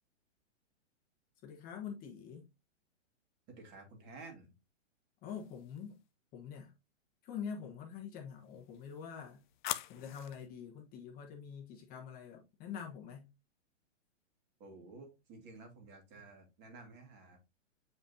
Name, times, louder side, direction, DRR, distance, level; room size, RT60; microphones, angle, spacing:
voice 1, 1.4-2.5 5.2-6.0 6.3-6.7 7.2-9.4 9.9-13.3, left 7 dB, 25° left, 1.2 m, -45 dB
voice 2, 3.5-4.6 14.6-17.4, right 3 dB, 30° right, 2.4 m, -53 dB
sound 1, 5.3-6.0 8.4-10.5, left 13 dB, 40° left, 0.6 m, -44 dB
7.6 x 5.1 x 2.7 m
hypercardioid pair, 145°, 38 cm